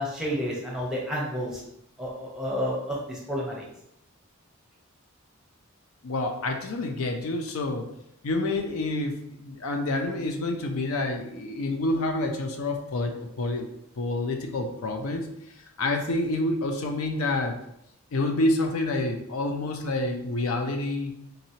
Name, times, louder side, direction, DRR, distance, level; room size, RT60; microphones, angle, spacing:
voice 1, 0.0-1.6 2.0-3.6, equal, 5° right, -4 dB, 0.8 m, -30 dB
voice 2, 6.0-7.9 8.2-13.7 14.0-15.3 15.8-17.6 18.1-21.1, left 2 dB, 75° left, 4 dB, 0.5 m, -28 dB
3.9 x 2.9 x 2.7 m, 0.78 s
head